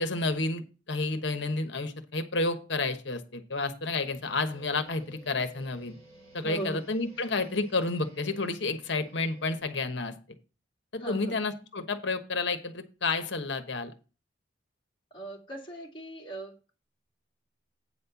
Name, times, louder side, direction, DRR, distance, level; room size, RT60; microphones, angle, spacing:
voice 1, 0.0-5.9 6.3-10.1 10.9-13.9, left 3 dB, 65° left, 9 dB, 1.1 m, -30 dB
sound 1, 4.0-9.6, right 1 dB, 45° right, 4.0 m, -55 dB
voice 2, 6.4-6.9 11.0-11.4 15.1-16.8, right 2 dB, 25° left, -1 dB, 2.1 m, -39 dB
8.8 x 4.3 x 6.9 m, 0.33 s
head